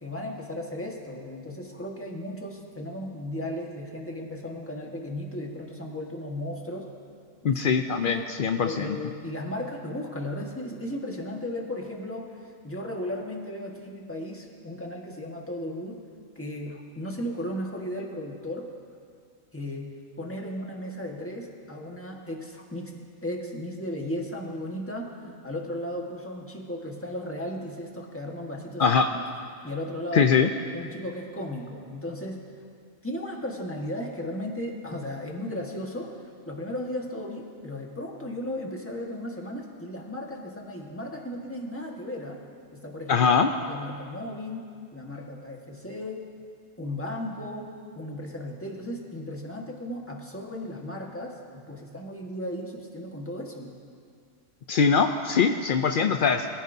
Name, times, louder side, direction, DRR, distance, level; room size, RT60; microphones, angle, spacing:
voice 1, 0.0-6.9 7.4-7.6 8.0-8.3 8.6-16.0 16.3-18.7 19.5-19.9 20.2-22.9 23.2-29.2 29.6-30.3 30.7-32.4 33.0-42.4 42.7-43.3 43.7-46.3 46.8-53.8, left 1 dB, 10° left, -1 dB, 1.4 m, -35 dB
voice 2, 7.4-8.9 28.8-29.0 30.1-30.5 43.1-43.5 54.7-56.5, left 6 dB, 70° left, 6 dB, 0.5 m, -22 dB
22.5 x 15.0 x 2.7 m, 2.2 s
omnidirectional pair, 1.5 m